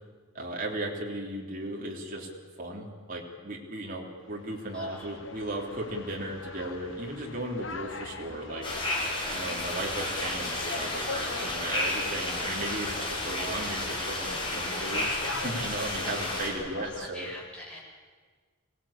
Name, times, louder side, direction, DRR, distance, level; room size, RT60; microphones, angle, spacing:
voice 1, 0.3-2.3 2.6-8.7 9.3-17.3, right 1 dB, 40° right, -1 dB, 3.3 m, -36 dB
sound 1, 4.3-17.1, left 3 dB, 60° left, 1.5 m, -42 dB
voice 2, 4.7-5.1 16.8-17.8, left 1 dB, 5° left, -5 dB, 7.0 m, -43 dB
sound 2, 8.6-16.5, left 1 dB, 25° left, 6.3 m, -32 dB
25.5 x 18.0 x 8.7 m, 1.5 s
head